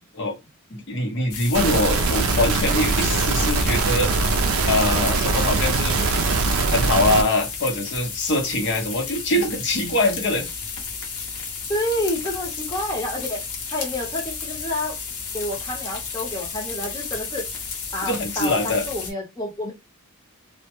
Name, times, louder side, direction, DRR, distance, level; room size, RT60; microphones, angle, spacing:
voice 1, 0.7-4.1 4.7-6.0 6.7-10.5 18.1-18.9, left 1 dB, 55° left, 0.7 m, -23 dB
sound 1, 1.3-19.1, left 5 dB, 85° left, 0.8 m, -33 dB
sound 2, 1.5-7.2, right 4 dB, 70° right, 0.4 m, -22 dB
voice 2, 11.7-13.4 13.7-15.0 15.3-17.5 17.9-19.7, left 1 dB, 15° left, 0.7 m, -29 dB
2.1 x 2.0 x 2.9 m
head